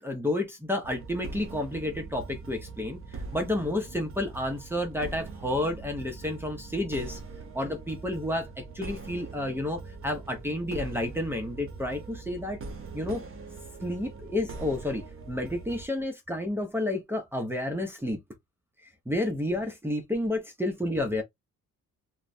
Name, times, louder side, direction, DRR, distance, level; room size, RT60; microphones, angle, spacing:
voice 1, 0.0-7.2 7.5-12.6 12.9-13.3 13.8-18.2 19.1-21.2, left 1 dB, 5° right, 0.6 m, -31 dB
sound 1, 0.8-15.9, right 4 dB, 45° right, 0.8 m, -42 dB
2.9 x 2.1 x 2.6 m
cardioid pair, 115°, 31 cm